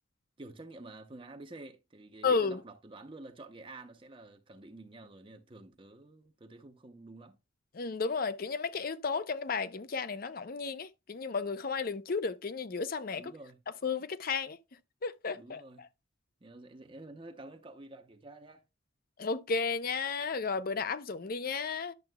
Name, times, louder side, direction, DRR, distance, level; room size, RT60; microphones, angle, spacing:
voice 1, 0.4-7.4 13.1-13.9 15.3-15.9 16.4-18.6, right 2 dB, 25° right, 0.7 m, -50 dB
voice 2, 2.2-2.6 7.7-13.3 13.8-14.6 15.0-15.9 19.2-21.9, left 4 dB, 45° left, 0.5 m, -33 dB
10.5 x 6.9 x 2.2 m
head